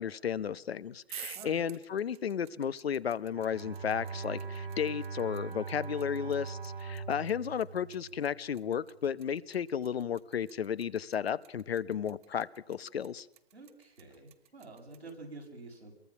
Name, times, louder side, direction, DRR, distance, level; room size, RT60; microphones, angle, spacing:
voice 1, 0.0-13.3, left 8 dB, 75° left, 16 dB, 1.1 m, -33 dB
sound 1, 1.0-15.1, right 12 dB, 50° right, 1.3 m, -51 dB
Bowed string instrument, 3.3-8.6, right 5 dB, 75° right, 4.3 m, -41 dB
voice 2, 13.5-15.9, right 3 dB, 90° right, 0 dB, 7.5 m, -48 dB
27.5 x 22.5 x 6.0 m, 0.79 s
figure-of-eight pair, 120°, 31 cm